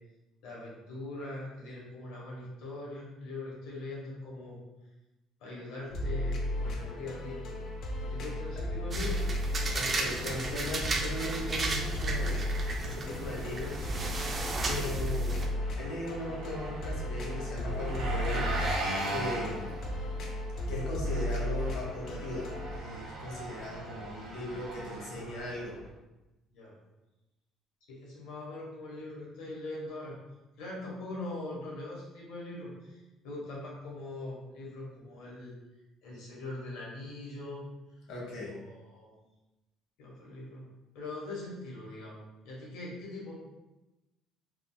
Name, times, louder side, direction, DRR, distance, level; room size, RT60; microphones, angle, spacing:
voice 1, 0.4-4.6 5.4-7.4 8.0-9.3 24.9-25.6 26.5-26.7 27.9-30.2 30.6-35.5 36.0-37.6 38.5-39.1 40.0-40.7 40.9-43.3, left 2 dB, 85° left, -4 dB, 1.1 m, -42 dB
sound 1, 5.9-22.8, left 1 dB, 45° left, 0.5 m, -35 dB
sound 2, 8.9-15.5, right 3 dB, 25° right, 0.3 m, -35 dB
voice 2, 9.7-12.5 12.8-13.8 14.6-18.5 19.1-19.8 20.7-25.8 38.1-38.6, left 1 dB, 65° left, -3 dB, 1.0 m, -38 dB
Engine, 10.1-25.9, right 2 dB, 65° right, 0.8 m, -40 dB
3.6 x 2.4 x 2.3 m, 1.0 s
cardioid pair, 160°, 0 cm